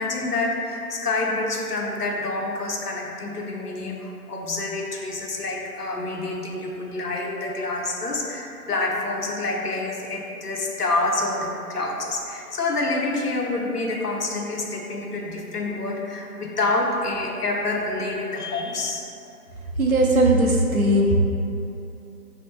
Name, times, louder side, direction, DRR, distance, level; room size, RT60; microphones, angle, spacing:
voice 1, 0.0-19.0, left 2 dB, 80° left, 0 dB, 0.7 m, -27 dB
voice 2, 19.8-21.2, right 1 dB, 65° right, -1 dB, 0.6 m, -18 dB
3.5 x 2.0 x 4.3 m, 2.8 s
figure-of-eight pair, 170°, 46 cm